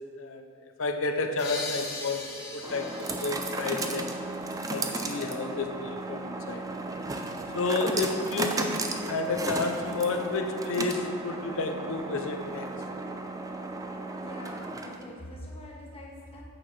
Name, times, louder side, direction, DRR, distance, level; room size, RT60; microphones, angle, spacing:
voice 1, 0.2-2.2 2.5-4.2 4.7-6.7 7.5-12.7, left 3 dB, 60° left, 5 dB, 0.6 m, -31 dB
sound 1, 1.2-15.2, right 2 dB, 15° right, 0.4 m, -35 dB
sound 2, 1.4-4.9, left 3 dB, 45° left, 1.2 m, -40 dB
voice 2, 14.1-16.4, left 1 dB, 25° left, -2 dB, 1.2 m, -44 dB
8.8 x 5.8 x 4.6 m, 2.4 s
head